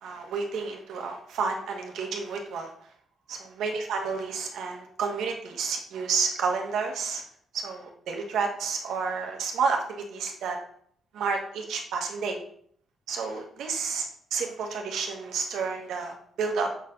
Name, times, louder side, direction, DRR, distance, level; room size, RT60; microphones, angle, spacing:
voice 1, 0.0-2.7 3.3-7.2 7.5-10.6 11.1-12.4 13.1-14.0 14.3-16.7, right 5 dB, 80° right, 3 dB, 1.5 m, -30 dB
7.2 x 4.6 x 5.3 m, 0.63 s
cardioid pair, 135°, 0 cm